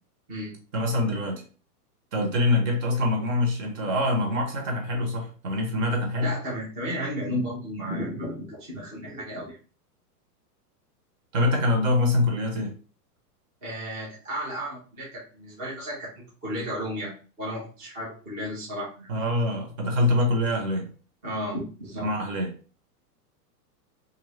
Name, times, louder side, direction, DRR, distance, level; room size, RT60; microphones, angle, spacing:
voice 1, 0.7-1.4 2.1-6.3 11.3-12.7 19.1-20.9 22.0-22.5, left 1 dB, 55° right, 2 dB, 1.2 m, -25 dB
voice 2, 6.2-9.5 13.6-19.1 21.2-22.1, equal, 15° right, -6 dB, 0.5 m, -33 dB
2.7 x 2.5 x 3.2 m, 0.38 s
supercardioid pair, 155°, 48 cm